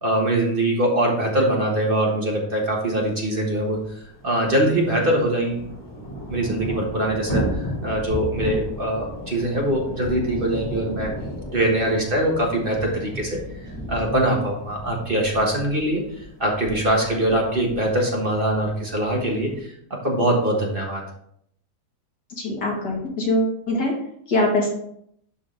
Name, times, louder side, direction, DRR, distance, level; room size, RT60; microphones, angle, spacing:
voice 1, 0.0-3.8 4.2-5.6 6.3-11.1 11.5-13.4 13.9-16.0 16.4-21.0, right 1 dB, 35° right, -1 dB, 1.5 m, -23 dB
Thunder / Rain, 3.0-3.1 3.3-3.4 3.7-19.6, equal, 35° left, 2.9 m, -34 dB
voice 2, 22.4-23.9 24.3-24.7, left 1 dB, 80° left, -2 dB, 2.7 m, -22 dB
11.5 x 3.8 x 3.8 m, 0.69 s
omnidirectional pair, 1.8 m